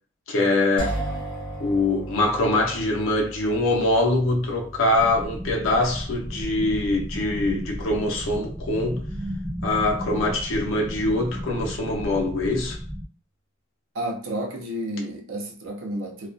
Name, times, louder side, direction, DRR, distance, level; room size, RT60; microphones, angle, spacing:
voice 1, 0.3-0.9 1.6-9.1 9.6-12.8, left 2 dB, 75° left, 0.6 m, -23 dB
sound 1, 0.8-10.5, right 1 dB, 25° left, 0.7 m, -38 dB
sound 2, 4.9-13.1, equal, 15° right, 1.0 m, -34 dB
voice 2, 13.9-16.3, right 1 dB, 70° right, 0.6 m, -31 dB
2.3 x 2.2 x 2.4 m
head